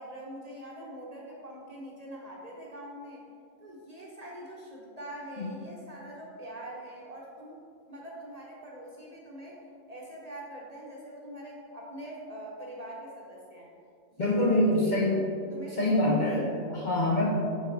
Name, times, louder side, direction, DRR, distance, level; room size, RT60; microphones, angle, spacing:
voice 1, 0.0-3.2 3.6-7.6 7.9-9.6 9.9-13.7 14.1-15.2 15.5-16.6, right 1 dB, 40° right, -3 dB, 0.7 m, -43 dB
voice 2, 14.2-15.2 15.8-17.3, left 1 dB, 50° left, -3 dB, 0.6 m, -25 dB
5.4 x 4.8 x 3.8 m, 2.3 s
omnidirectional pair, 1.3 m